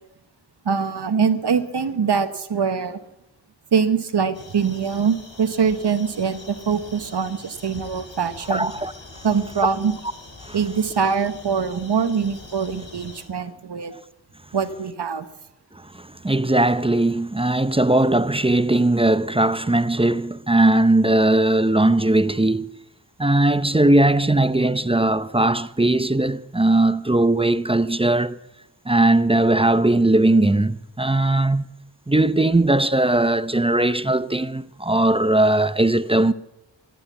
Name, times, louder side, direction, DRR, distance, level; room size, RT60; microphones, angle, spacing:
voice 1, 0.6-3.0 3.7-8.7 9.2-9.9 10.5-13.9 14.5-15.2, right 6 dB, 60° right, 1.2 m, -23 dB
sound 1, 4.3-13.2, left 2 dB, 75° left, 3.2 m, -43 dB
voice 2, 8.5-8.9 10.5-10.6 13.9-14.0 15.9-22.7 23.2-28.4 28.9-31.7 32.1-36.3, right 2 dB, 15° right, 0.6 m, -19 dB
14.0 x 11.5 x 7.1 m
cardioid pair, 40°, 45 cm